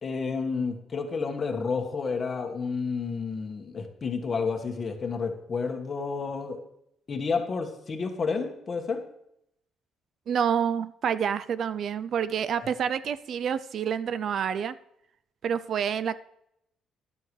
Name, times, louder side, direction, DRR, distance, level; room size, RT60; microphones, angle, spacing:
voice 1, 0.0-6.6 7.1-9.0 12.6-12.7, left 4 dB, 35° left, 5 dB, 1.5 m, -30 dB
voice 2, 10.3-14.8 15.4-16.2, right 8 dB, 55° right, 15 dB, 0.4 m, -28 dB
13.0 x 11.5 x 3.2 m, 0.77 s
cardioid pair, 125°, 0 cm